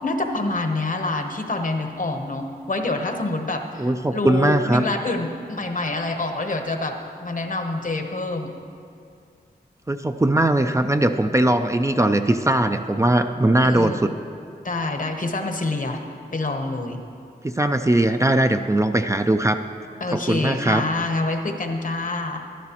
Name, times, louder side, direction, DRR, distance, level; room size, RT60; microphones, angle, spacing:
voice 1, 0.0-6.9 7.2-8.5 13.6-14.1 14.6-16.0 16.3-17.0 20.0-22.5, left 2 dB, 50° left, 5 dB, 1.0 m, -26 dB
voice 2, 3.8-4.8 9.9-14.1 17.4-19.6 20.1-20.9, right 1 dB, 15° right, 6 dB, 0.4 m, -20 dB
13.5 x 11.5 x 3.0 m, 2.4 s
cardioid pair, 50°, 17 cm